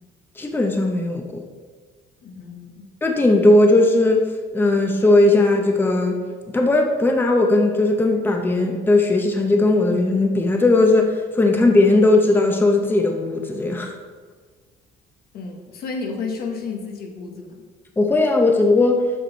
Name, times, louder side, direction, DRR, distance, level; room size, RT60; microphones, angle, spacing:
voice 1, 0.4-1.4 3.0-4.3 4.5-13.9 18.0-19.0, left 2 dB, 10° left, 3 dB, 0.7 m, -17 dB
voice 2, 2.2-2.9 15.3-17.6, left 4 dB, 65° left, 3 dB, 1.2 m, -32 dB
7.6 x 6.0 x 4.0 m, 1.5 s
cardioid pair, 110°, 17 cm